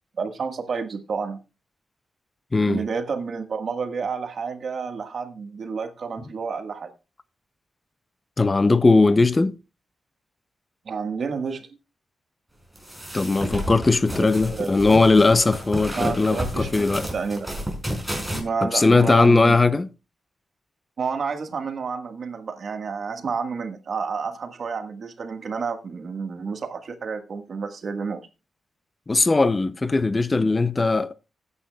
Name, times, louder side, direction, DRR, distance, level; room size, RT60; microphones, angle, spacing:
voice 1, 0.2-1.4 2.7-6.9 10.8-11.7 14.2-14.7 16.0-16.7 17.1-17.5 18.3-19.6 21.0-28.3, right 5 dB, 65° right, 1.5 m, -30 dB
voice 2, 2.5-2.8 8.4-9.5 13.1-17.0 18.6-19.9 29.1-31.1, left 3 dB, 30° left, 0.6 m, -19 dB
sound 1, 12.7-18.4, equal, 5° right, 5.2 m, -31 dB
19.5 x 9.7 x 2.3 m
cardioid pair, 90°, 0 cm